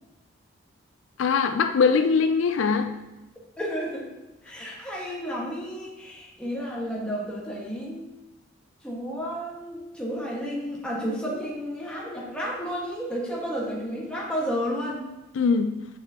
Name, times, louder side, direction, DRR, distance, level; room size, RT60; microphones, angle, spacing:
voice 1, 1.2-3.0 15.3-15.8, left 5 dB, 70° left, 8 dB, 0.4 m, -22 dB
voice 2, 3.6-4.0 4.4-8.1 8.8-15.0, equal, 5° left, -5 dB, 1.4 m, -32 dB
6.9 x 6.3 x 2.8 m, 1.1 s
head